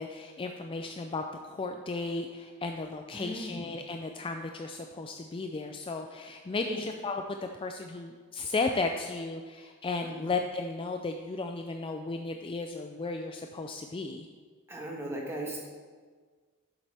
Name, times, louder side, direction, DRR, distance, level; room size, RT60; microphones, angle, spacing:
voice 1, 0.0-7.2 7.5-14.3, left 3 dB, 25° left, 4 dB, 0.4 m, -35 dB
voice 2, 3.1-3.7 6.7-6.8 10.0-10.2 14.7-15.6, right 1 dB, 10° right, -2 dB, 1.4 m, -37 dB
11.5 x 7.2 x 3.4 m, 1.5 s
head